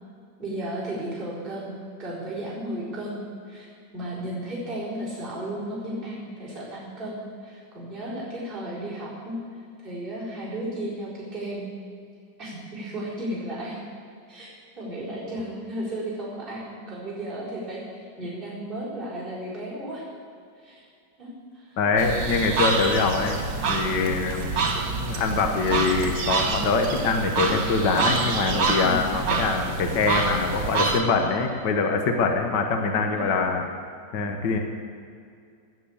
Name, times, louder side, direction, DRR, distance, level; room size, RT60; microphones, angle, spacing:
voice 1, 0.4-3.7 3.9-9.4 9.8-11.7 12.4-13.8 14.3-14.5 14.8-20.1 20.6-20.8 21.2-21.8 28.8-29.2 32.8-33.3, right 1 dB, 25° right, -8 dB, 4.6 m, -34 dB
voice 2, 21.8-33.6 34.1-34.6, left 4 dB, 65° left, 4 dB, 1.8 m, -24 dB
sound 1, 22.0-31.0, right 4 dB, 80° right, 2.0 m, -27 dB
17.5 x 7.6 x 8.6 m, 2.3 s
omnidirectional pair, 2.0 m